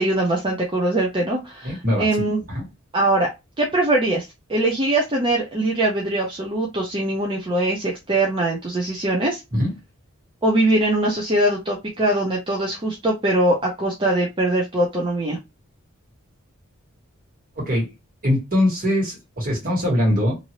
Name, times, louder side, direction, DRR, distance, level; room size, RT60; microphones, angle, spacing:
voice 1, 0.0-2.4 2.9-3.3 3.6-9.4 10.4-15.4, right 1 dB, 25° right, -1 dB, 0.6 m, -22 dB
voice 2, 1.6-2.1 2.5-2.6 9.5-9.7 17.6-17.9 18.2-20.4, left 1 dB, 45° right, -2 dB, 1.6 m, -21 dB
2.7 x 2.7 x 2.9 m, 0.23 s
head